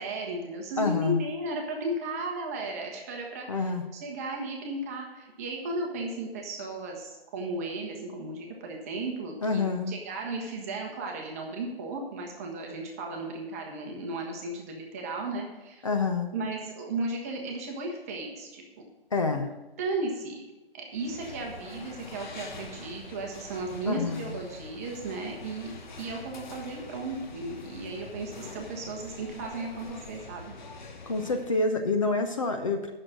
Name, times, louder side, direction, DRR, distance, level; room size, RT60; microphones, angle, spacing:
voice 1, 0.0-15.9 16.3-18.9 19.3-19.4 19.8-20.4 20.7-25.7 26.0-30.6, right 2 dB, 15° right, 1 dB, 1.0 m, -35 dB
voice 2, 0.8-1.3 3.5-3.8 9.4-9.9 15.8-16.3 19.1-19.5 23.9-24.3 31.1-33.0, left 3 dB, 35° left, 5 dB, 0.6 m, -27 dB
sound 1, 20.9-31.7, left 3 dB, 50° left, 1.1 m, -45 dB
8.7 x 6.5 x 7.5 m, 1.1 s
figure-of-eight pair, 155°, 30 cm